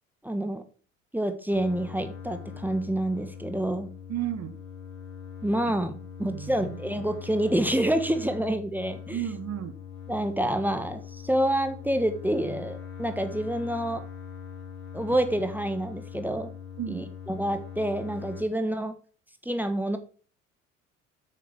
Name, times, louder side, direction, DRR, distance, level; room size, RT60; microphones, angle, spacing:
voice 1, 0.2-0.6 1.1-3.9 5.4-5.9 6.2-9.2 10.1-14.0 14.9-16.5 16.9-18.9 19.4-20.0, right 1 dB, 5° right, 7 dB, 1.3 m, -28 dB
sound 1, 1.5-18.4, left 7 dB, 65° left, 4.0 m, -42 dB
voice 2, 4.1-4.6 6.2-6.8 9.1-9.7 16.8-17.1, right 11 dB, 45° right, 10 dB, 1.5 m, -33 dB
7.4 x 6.7 x 6.4 m, 0.40 s
figure-of-eight pair, 60°, 38 cm